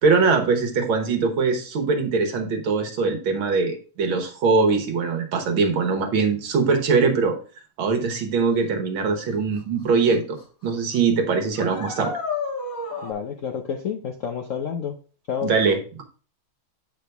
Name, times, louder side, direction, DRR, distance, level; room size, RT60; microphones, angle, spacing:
voice 1, 0.0-7.4 7.8-12.1 15.4-16.0, right 4 dB, 75° right, 4 dB, 2.0 m, -22 dB
sound 1, 9.6-9.7 10.1-10.4 10.7-10.8 11.5-13.1, left 4 dB, 45° left, 1.8 m, -30 dB
voice 2, 13.0-15.0 15.3-15.5, left 7 dB, 65° left, 3 dB, 0.8 m, -29 dB
8.3 x 5.0 x 3.4 m, 0.37 s
omnidirectional pair, 2.2 m